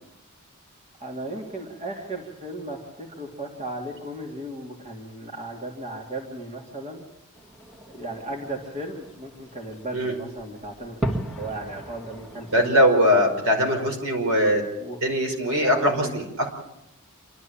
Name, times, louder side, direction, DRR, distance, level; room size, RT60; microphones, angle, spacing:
voice 1, 1.0-7.1 7.9-12.9 14.8-15.0 15.6-16.1, right 1 dB, 30° right, 0 dB, 3.0 m, -36 dB
Fireworks, 7.3-12.7, right 1 dB, ahead, 2.2 m, -36 dB
voice 2, 12.5-14.6 15.0-16.5, equal, 75° right, 3 dB, 5.4 m, -21 dB
28.0 x 12.5 x 8.8 m, 0.87 s
head